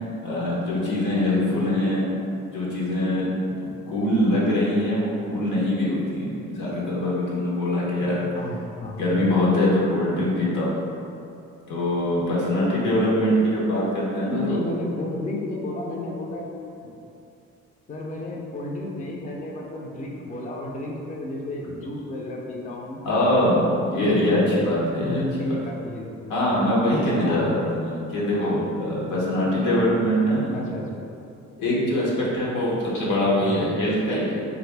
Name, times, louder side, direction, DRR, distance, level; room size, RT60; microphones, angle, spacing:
voice 1, 0.2-2.2 2.5-8.3 9.0-10.8 11.7-14.6 23.0-25.6 26.3-30.6 31.6-34.4, left 1 dB, 85° left, -6 dB, 0.9 m, -23 dB
voice 2, 8.4-9.3 14.3-16.5 17.9-23.4 23.9-24.5 25.0-26.3 27.2-27.6 28.3-28.7 30.5-30.9 33.4-33.7, left 1 dB, 25° left, -2 dB, 0.4 m, -32 dB
2.9 x 2.5 x 3.3 m, 2.6 s
cardioid pair, 90°, 30 cm